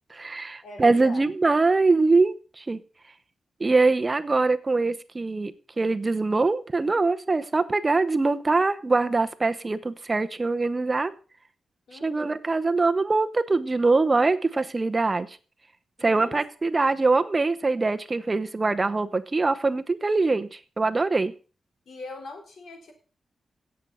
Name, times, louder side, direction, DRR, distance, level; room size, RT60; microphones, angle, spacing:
voice 1, 0.1-2.8 3.6-11.1 11.9-15.4 16.0-21.3, right 3 dB, 25° right, 10 dB, 0.8 m, -23 dB
voice 2, 0.6-1.3 11.9-12.4 16.0-16.4 21.9-22.9, left 3 dB, 70° left, 4 dB, 4.0 m, -41 dB
17.0 x 7.7 x 5.5 m, 0.36 s
wide cardioid pair, 120°, 0 cm